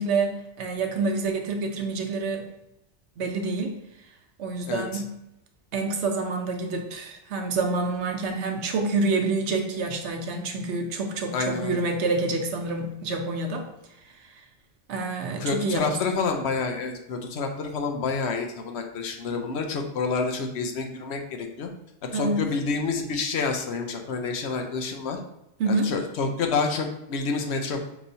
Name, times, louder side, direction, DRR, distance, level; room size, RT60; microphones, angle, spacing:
voice 1, 0.0-2.5 3.2-3.8 4.4-5.1 5.7-13.7 14.2-14.4 14.9-15.9 22.1-22.5 25.6-25.9, right 3 dB, 75° right, 4 dB, 0.9 m, -27 dB
voice 2, 4.7-5.0 11.3-11.8 15.4-21.7 22.1-25.2 25.7-27.9, left 4 dB, 70° left, 4 dB, 0.8 m, -28 dB
5.4 x 3.0 x 2.6 m, 0.84 s
omnidirectional pair, 1.2 m